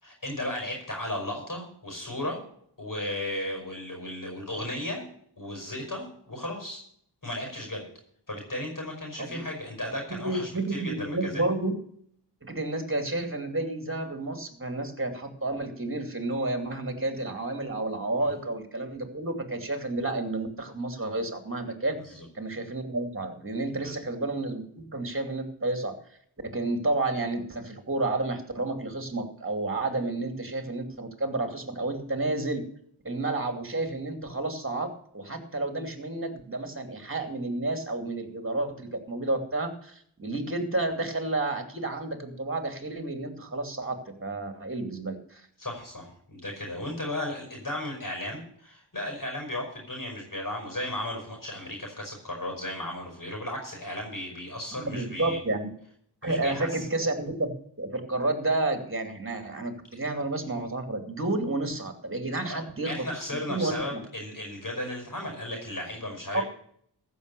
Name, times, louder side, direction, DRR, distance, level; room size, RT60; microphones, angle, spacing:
voice 1, 0.0-2.4 2.8-5.0 5.4-6.8 7.2-7.8 8.3-11.4 18.2-18.3 22.0-22.3 23.8-24.0 45.6-55.4 56.2-56.9 62.5-66.4, left 1 dB, 50° left, 1 dB, 5.2 m, -35 dB
voice 2, 10.1-11.7 12.4-22.0 22.3-25.9 26.4-32.6 33.0-45.5 54.7-55.7 56.2-57.5 57.8-63.0 63.5-64.0 66.3-66.4, right 2 dB, 30° right, 6 dB, 2.7 m, -31 dB
15.0 x 6.5 x 6.7 m, 0.65 s
wide cardioid pair, 60°, 41 cm